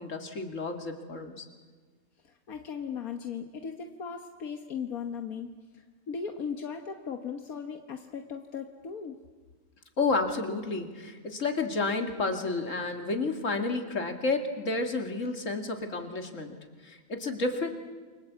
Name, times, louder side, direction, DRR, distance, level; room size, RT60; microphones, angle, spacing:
voice 1, 0.0-1.4 10.0-16.5 16.8-17.7, left 3 dB, 60° left, 4 dB, 2.8 m, -31 dB
voice 2, 2.2-9.2, left 6 dB, 85° left, 5 dB, 1.7 m, -38 dB
28.5 x 24.0 x 8.3 m, 1.5 s
omnidirectional pair, 1.5 m